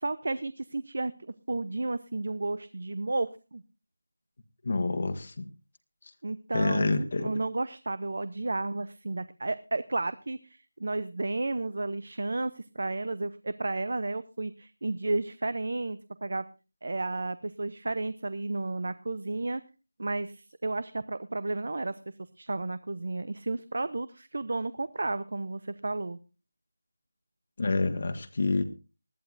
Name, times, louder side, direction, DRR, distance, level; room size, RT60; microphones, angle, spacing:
voice 1, 0.0-3.6 6.2-16.5 16.8-19.6 20.0-26.2, right 2 dB, 60° right, 15 dB, 0.7 m, -32 dB
voice 2, 4.6-5.4 6.5-7.3 27.6-28.6, left 3 dB, 45° left, 7 dB, 1.3 m, -27 dB
20.0 x 13.5 x 2.6 m, 0.31 s
figure-of-eight pair, 170°, 0 cm